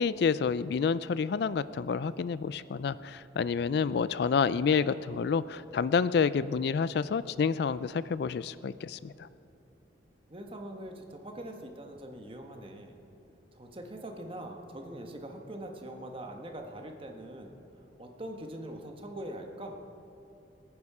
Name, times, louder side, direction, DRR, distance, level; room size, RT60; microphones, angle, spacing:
voice 1, 0.0-9.3, left 5 dB, 60° left, 16 dB, 0.3 m, -29 dB
voice 2, 10.3-13.0 13.5-17.6 18.0-19.8, right 1 dB, 30° right, 3 dB, 1.4 m, -42 dB
21.5 x 9.6 x 4.9 m, 3.0 s
head